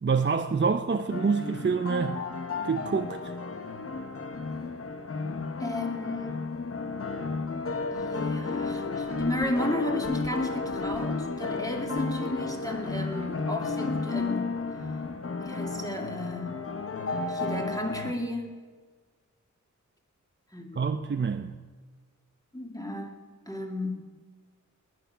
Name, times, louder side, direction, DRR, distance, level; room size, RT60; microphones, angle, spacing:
voice 1, 0.0-2.2 2.6-3.2 20.8-21.5, right 5 dB, 40° right, 7 dB, 0.6 m, -26 dB
sound 1, 1.1-18.1, left 3 dB, 50° left, 1.0 m, -32 dB
voice 2, 5.6-6.5 7.9-14.6 15.4-16.6 17.3-18.6 20.5-20.9 22.5-23.1 23.5-23.9, left 1 dB, 10° left, 1 dB, 2.3 m, -34 dB
19.5 x 9.5 x 5.7 m, 1.5 s
wide cardioid pair, 85°, 30 cm